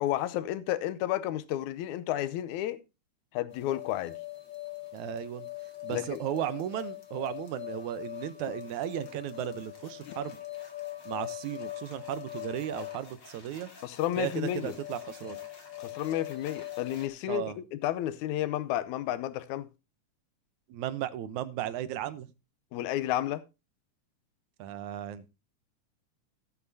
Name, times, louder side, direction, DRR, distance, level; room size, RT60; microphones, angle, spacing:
voice 1, 0.0-2.8 3.3-4.2 5.9-6.2 10.1-10.2 13.8-14.7 15.8-19.7 22.7-23.4, left 13 dB, 75° left, 2.1 m, -31 dB
sound 1, 3.5-17.1, left 15 dB, 40° left, 2.3 m, -42 dB
voice 2, 4.9-5.5 5.8-10.4 11.1-13.7 14.2-15.4 17.3-17.6 20.7-22.3 24.6-25.3, right 12 dB, 75° right, 2.1 m, -35 dB
16.5 x 8.5 x 2.7 m
omnidirectional pair, 3.7 m